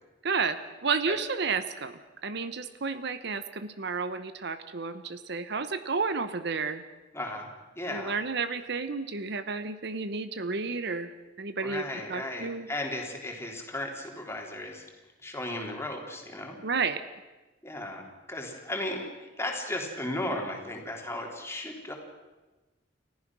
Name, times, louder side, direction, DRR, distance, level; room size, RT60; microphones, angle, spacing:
voice 1, 0.2-1.9 2.2-6.8 7.9-11.1 11.4-12.7 16.6-17.0, right 4 dB, 65° right, 12 dB, 0.9 m, -31 dB
voice 2, 7.1-7.5 7.8-8.2 11.6-14.8 15.2-16.6 17.6-21.9, left 1 dB, 15° left, 1 dB, 3.4 m, -35 dB
30.0 x 14.5 x 6.2 m, 1.2 s
head